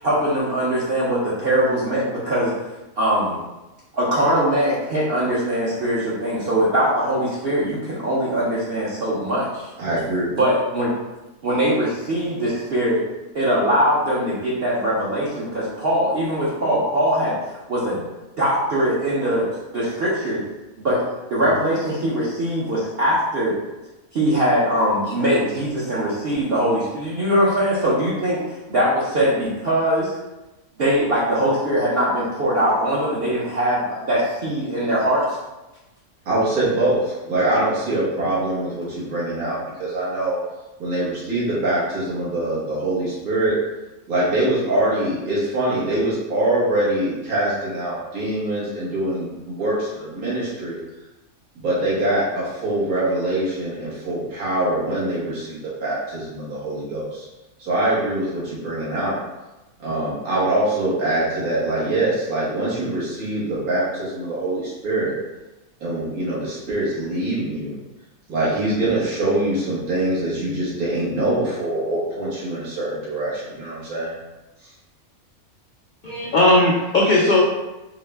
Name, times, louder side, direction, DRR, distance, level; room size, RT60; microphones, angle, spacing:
voice 1, 0.0-2.5 3.0-3.4 3.9-9.7 10.4-10.9 11.4-13.0 13.3-17.4 17.7-18.1 18.4-19.5 19.7-20.4 20.8-23.6 24.1-28.4 28.7-30.2 30.8-35.4, right 1 dB, 50° right, -8 dB, 0.8 m, -21 dB
voice 2, 9.8-10.3 36.3-40.4 40.8-43.6 44.1-50.8 51.6-57.3 57.6-59.2 59.8-65.1 65.8-67.8 68.3-74.2, right 1 dB, 80° right, -8 dB, 1.7 m, -23 dB
voice 3, 76.0-77.4, left 2 dB, 90° left, -4 dB, 0.4 m, -17 dB
4.7 x 2.1 x 3.3 m, 1.0 s
omnidirectional pair, 1.5 m